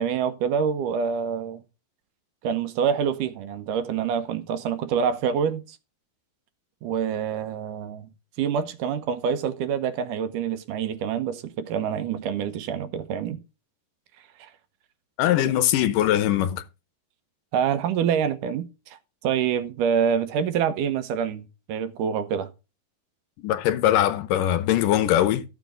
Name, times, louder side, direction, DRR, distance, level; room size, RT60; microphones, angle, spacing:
voice 1, 0.0-1.6 2.4-5.8 6.8-8.1 8.4-13.4 14.4-14.5 17.5-22.5, right 7 dB, 75° right, 2.5 m, -26 dB
voice 2, 15.2-16.6 23.4-25.5, left 12 dB, 75° left, 2.4 m, -21 dB
13.5 x 7.1 x 3.8 m
omnidirectional pair, 4.0 m